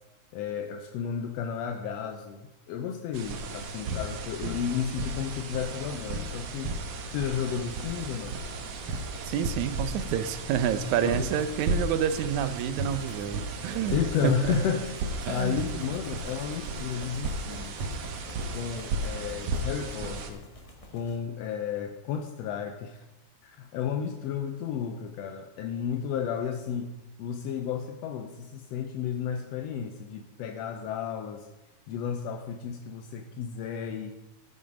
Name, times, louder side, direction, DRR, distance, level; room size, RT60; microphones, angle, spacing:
voice 1, 0.3-6.8 7.1-8.4 11.0-11.3 13.9-14.9 15.3-17.7 18.5-20.4 20.9-23.0 23.4-31.5 31.9-34.1, left 8 dB, 75° left, 5 dB, 1.6 m, -32 dB
sound 1, 3.1-20.3, right 2 dB, 65° right, 1.9 m, -35 dB
sound 2, 7.5-21.2, equal, 45° left, 0.4 m, -49 dB
voice 2, 9.3-14.0 14.2-14.6 15.3-15.8, right 8 dB, 80° right, 12 dB, 2.1 m, -28 dB
14.0 x 6.3 x 5.1 m, 1.0 s
omnidirectional pair, 3.4 m